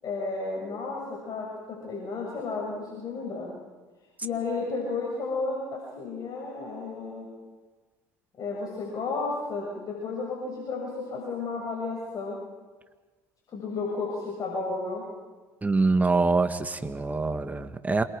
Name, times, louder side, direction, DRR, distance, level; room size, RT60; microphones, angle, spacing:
voice 1, 0.0-3.5 4.2-7.3 8.4-12.4 13.5-15.0, left 3 dB, 45° left, -2 dB, 7.0 m, -32 dB
voice 2, 15.6-18.0, right 3 dB, 20° right, 8 dB, 1.8 m, -25 dB
27.5 x 22.5 x 5.1 m, 1.3 s
hypercardioid pair, 70°, 9 cm